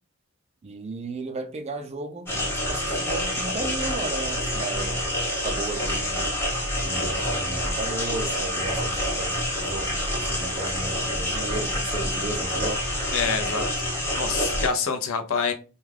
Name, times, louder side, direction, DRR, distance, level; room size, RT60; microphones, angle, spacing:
voice 1, 0.6-5.0 5.4-6.2 6.8-12.8, right 2 dB, 30° right, 0.3 m, -35 dB
sound 1, 2.3-14.7, equal, 10° left, 0.8 m, -27 dB
voice 2, 13.1-13.7 14.2-15.5, left 5 dB, 70° left, 0.5 m, -26 dB
2.3 x 2.3 x 3.2 m
head